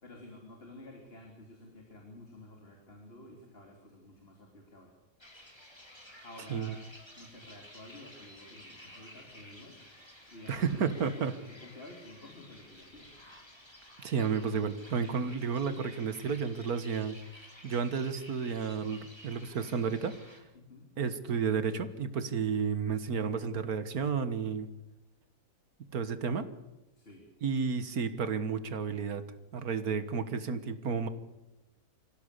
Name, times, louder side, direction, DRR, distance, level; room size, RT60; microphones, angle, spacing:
voice 1, 0.0-4.9 6.2-6.8 7.2-9.8 10.3-13.1 20.5-20.9 27.0-27.3 30.3-30.8, left 1 dB, 40° left, 2 dB, 3.5 m, -51 dB
sound 1, 5.2-20.4, left 1 dB, 15° left, 3.7 m, -53 dB
voice 2, 10.5-11.3 14.0-17.2 17.6-20.4 21.0-24.7 25.9-26.5 27.4-29.2 29.5-31.1, right 6 dB, 80° right, 11 dB, 2.0 m, -32 dB
25.5 x 15.5 x 8.3 m, 0.94 s
omnidirectional pair, 1.6 m